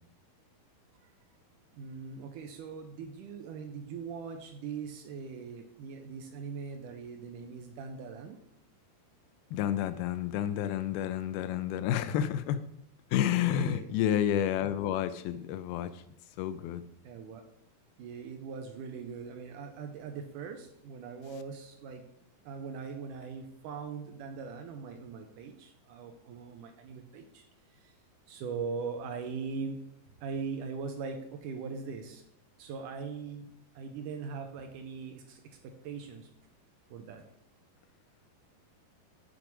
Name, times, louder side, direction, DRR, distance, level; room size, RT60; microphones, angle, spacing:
voice 1, 1.7-8.4 13.5-13.9 17.0-17.4 18.0-22.0 22.4-28.0 28.3-29.8 30.2-32.2 32.6-33.5 33.8-36.3 36.9-37.2, right 5 dB, 80° right, 5 dB, 1.9 m, -41 dB
voice 2, 9.5-12.6 13.1-16.0 16.4-16.8, left 11 dB, 85° left, 13 dB, 2.4 m, -30 dB
6.8 x 6.1 x 6.1 m, 0.74 s
omnidirectional pair, 4.4 m